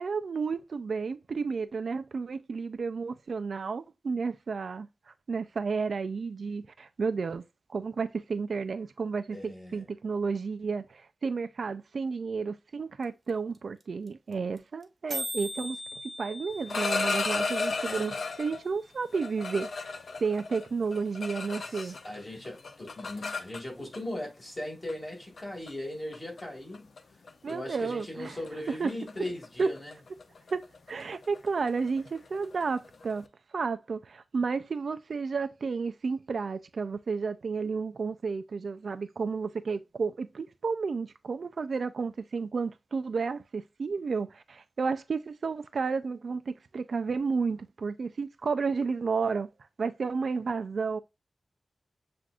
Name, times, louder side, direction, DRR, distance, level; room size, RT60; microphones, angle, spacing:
voice 1, 0.0-4.9 5.3-7.4 7.7-15.8 16.2-19.9 20.2-22.0 27.4-28.3 28.8-28.9 29.6-29.7 30.5-30.6 30.9-33.3 33.5-49.5 49.8-51.0, right 5 dB, 75° right, 0.3 m, -32 dB
voice 2, 9.3-9.9 17.8-18.1 21.7-26.9 27.5-30.0, left 1 dB, 25° left, 1.9 m, -39 dB
sound 1, 13.0-13.1 13.3-13.4 13.6-13.8 14.1-14.2 14.3-14.6 14.8-14.9 15.1-19.1, equal, 40° right, 0.8 m, -41 dB
sound 2, 16.5-18.6 19.1-22.2 22.4-24.0 24.9-25.0 25.4-25.7 26.1-26.4 26.7-27.0 27.3-27.5 27.8-33.2, left 4 dB, 75° left, 0.5 m, -34 dB
7.3 x 2.5 x 2.3 m
wide cardioid pair, 115°, 0 cm